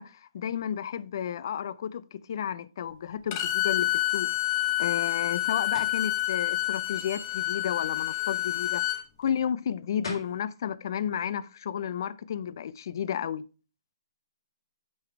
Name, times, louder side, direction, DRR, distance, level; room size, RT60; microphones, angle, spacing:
voice 1, 0.0-4.3 4.8-8.8 9.2-13.4, left 9 dB, 50° left, 0.4 m, -32 dB
Bowed string instrument, 3.3-9.0, left 16 dB, 30° left, 0.8 m, -28 dB
sound 1, 5.7-6.0 9.7-9.8 10.0-10.4, left 3 dB, 70° left, 2.5 m, -37 dB
6.0 x 4.0 x 4.5 m
hypercardioid pair, 155°, 3 cm